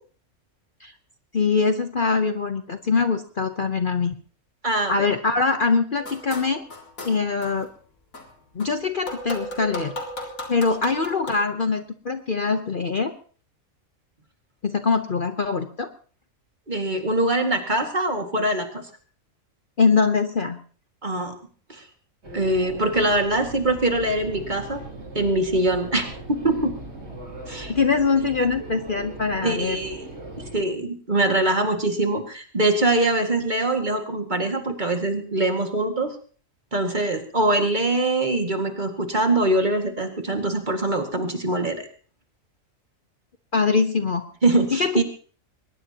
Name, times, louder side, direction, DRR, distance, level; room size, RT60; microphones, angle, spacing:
voice 1, 1.3-4.2 4.9-6.6 7.0-7.7 8.5-9.9 10.5-13.1 14.6-15.9 19.8-20.6 27.7-29.8 43.5-44.2 44.7-45.0, left 4 dB, 45° left, 8 dB, 1.0 m, -23 dB
voice 2, 4.6-5.1 16.7-18.9 21.0-21.4 21.7-21.8 22.3-24.8 25.1-26.7 27.5-27.7 29.4-30.0 30.5-36.2 36.7-41.9 44.4-45.0, right 2 dB, 35° right, 4 dB, 2.1 m, -23 dB
sound 1, 6.0-7.7 8.1-11.3, left 1 dB, 75° left, 3.5 m, -36 dB
sound 2, 22.2-30.7, right 2 dB, 50° right, 4.3 m, -39 dB
22.0 x 19.5 x 2.9 m, 0.42 s
omnidirectional pair, 1.4 m